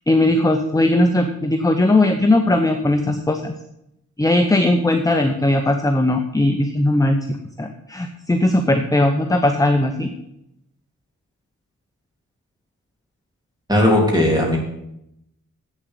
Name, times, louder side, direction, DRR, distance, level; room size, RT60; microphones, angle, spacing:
voice 1, 0.1-3.5 4.2-7.2 7.6-10.1, left 1 dB, 10° left, 5 dB, 0.7 m, -18 dB
voice 2, 13.7-14.6, left 1 dB, 15° right, -1 dB, 3.3 m, -16 dB
8.2 x 7.3 x 8.3 m, 0.82 s
wide cardioid pair, 125°, 31 cm